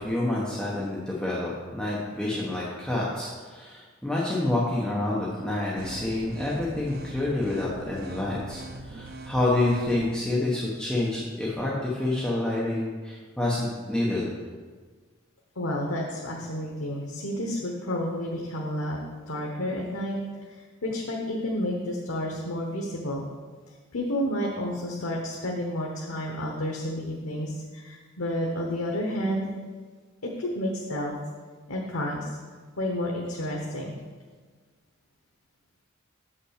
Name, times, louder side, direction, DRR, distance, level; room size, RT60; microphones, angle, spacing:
voice 1, 0.0-14.3, left 2 dB, 5° left, -6 dB, 1.0 m, -28 dB
sound 1, 5.8-10.2, right 2 dB, 45° right, 0.6 m, -41 dB
voice 2, 15.6-20.2 20.5-23.2 23.9-29.5 30.2-31.1 31.7-32.4 32.8-33.9, left 1 dB, 85° left, -1 dB, 1.0 m, -30 dB
7.0 x 5.6 x 6.4 m, 1.4 s
head